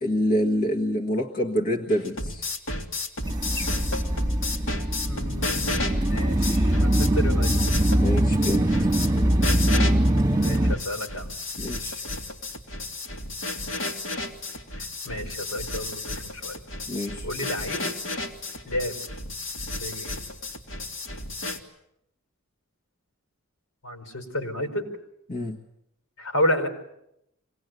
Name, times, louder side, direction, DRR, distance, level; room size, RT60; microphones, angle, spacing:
voice 1, 0.0-2.4 8.0-8.7 11.6-12.0 16.9-17.3 25.3-25.6, equal, 40° left, 1 dB, 1.6 m, -26 dB
sound 1, 1.9-21.6, left 2 dB, 65° left, 2.4 m, -32 dB
sound 2, 3.2-10.8, right 1 dB, 15° right, 1.6 m, -22 dB
voice 2, 5.0-7.5 10.4-11.3 14.8-16.6 17.2-18.1 18.6-19.0 19.8-20.2 23.8-24.9 26.2-26.7, left 1 dB, 80° left, 5 dB, 5.1 m, -31 dB
25.0 x 19.0 x 9.4 m, 0.81 s
head